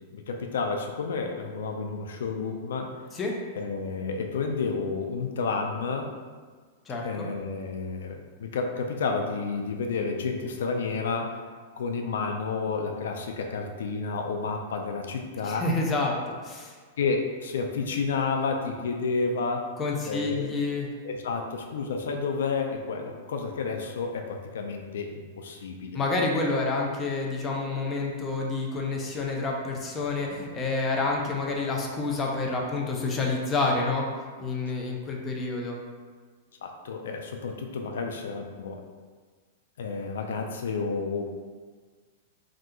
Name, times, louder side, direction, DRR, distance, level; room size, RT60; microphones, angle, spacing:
voice 1, 0.1-2.9 3.6-6.1 7.0-11.4 11.8-15.7 17.0-19.7 20.1-20.6 21.0-26.0 36.6-38.8 39.8-41.2, left 4 dB, 85° left, 3 dB, 0.3 m, -30 dB
voice 2, 6.9-7.3 15.4-16.2 16.4-16.7 19.8-20.9 25.9-34.1 34.4-35.8, left 3 dB, 20° left, -1 dB, 0.4 m, -28 dB
2.7 x 2.3 x 3.6 m, 1.5 s
supercardioid pair, 150°, 0 cm